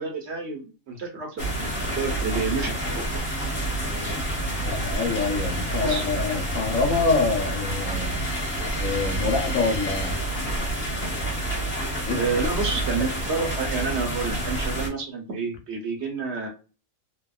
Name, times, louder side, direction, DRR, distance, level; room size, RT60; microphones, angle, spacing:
voice 1, 0.0-3.2 3.8-4.2 5.8-6.0 12.1-16.5, right 4 dB, 60° right, 2 dB, 1.0 m, -29 dB
sound 1, 1.4-14.9, right 1 dB, 40° left, 1.4 m, -28 dB
voice 2, 4.7-8.2 8.8-10.2 12.0-12.2, left 4 dB, 75° left, 4 dB, 1.1 m, -26 dB
2.8 x 2.2 x 2.2 m, 0.33 s
omnidirectional pair, 1.4 m